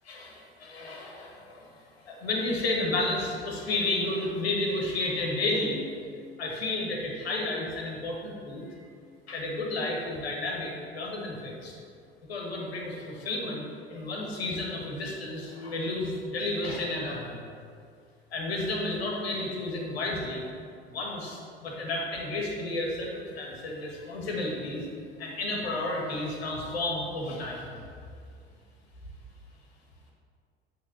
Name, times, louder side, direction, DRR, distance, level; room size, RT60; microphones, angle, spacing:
voice 1, 0.1-5.8 6.4-8.8 9.3-11.7 12.3-13.6 13.9-17.4 18.3-20.4 20.9-24.8 25.2-27.8, left 2 dB, 70° left, -1 dB, 1.5 m, -32 dB
8.5 x 3.6 x 6.0 m, 2.3 s
figure-of-eight pair, 65°, 32 cm